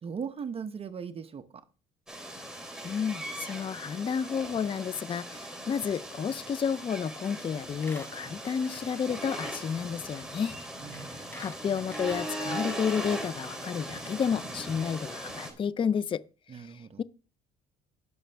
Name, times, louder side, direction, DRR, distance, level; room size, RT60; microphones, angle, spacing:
voice 1, 0.0-1.6 10.8-11.2 16.5-17.0, right 6 dB, 35° right, 0.8 m, -38 dB
sound 1, 2.1-15.5, right 1 dB, 5° right, 3.0 m, -39 dB
voice 2, 2.8-10.6 11.1-16.2 16.5-17.0, left 7 dB, 30° left, 0.4 m, -31 dB
Squeak, 7.2-7.4 7.7-9.3 9.6-9.7 10.5-10.6 10.9-13.2 13.7-13.8 14.0-14.1, left 1 dB, 10° left, 4.4 m, -48 dB
16.5 x 6.3 x 3.4 m
cardioid pair, 110°, 17 cm